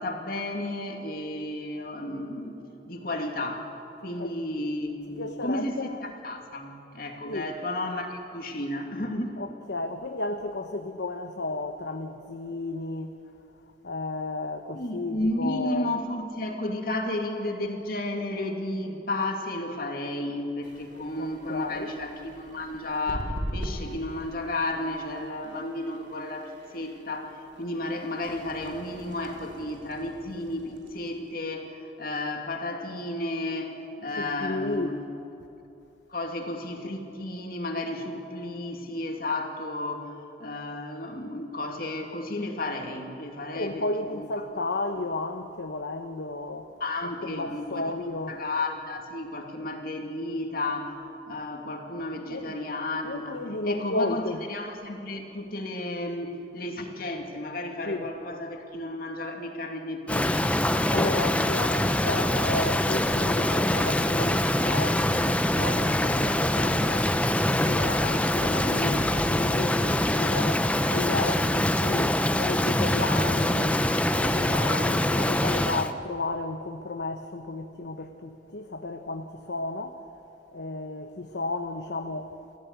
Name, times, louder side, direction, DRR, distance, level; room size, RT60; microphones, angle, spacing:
voice 1, 0.0-2.6 2.9-3.7 4.0-9.4 14.7-35.0 36.1-43.8 44.1-44.3 46.8-48.0 48.3-54.2 54.5-60.5, left 1 dB, 55° left, 3 dB, 2.5 m, -33 dB
voice 2, 5.2-6.0 7.3-7.5 9.4-13.2 13.8-15.9 21.2-21.9 34.2-34.9 43.5-46.7 47.2-48.4 52.3-52.6 53.0-54.4 57.8-58.1 60.9-67.2 67.5-73.8 74.1-80.0 80.5-82.4, left 2 dB, 80° left, 6 dB, 1.0 m, -33 dB
sound 1, 20.6-31.3, equal, 85° right, 3.0 m, -41 dB
Rain, 60.1-75.9, left 1 dB, 10° left, 0.7 m, -24 dB
28.5 x 15.0 x 8.4 m, 3.0 s
head